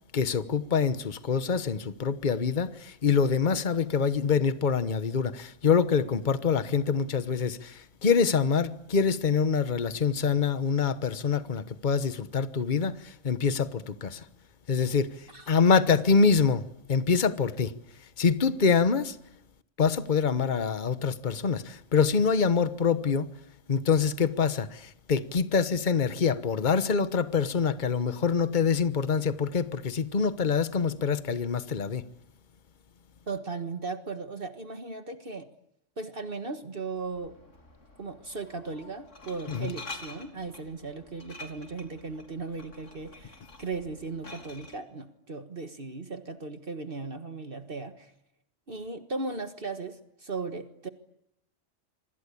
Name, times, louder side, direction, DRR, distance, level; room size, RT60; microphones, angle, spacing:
voice 1, 0.1-14.2 14.7-15.1 15.5-17.7 18.2-19.2 19.8-23.3 23.7-32.0 39.5-39.7, left 5 dB, 40° left, 1.2 m, -25 dB
voice 2, 33.3-35.5 36.0-37.4 38.0-48.1 48.7-50.9, right 4 dB, 45° right, 1.7 m, -37 dB
Glass, 37.0-44.8, left 2 dB, 70° left, 3.8 m, -48 dB
26.5 x 24.5 x 8.6 m
omnidirectional pair, 1.3 m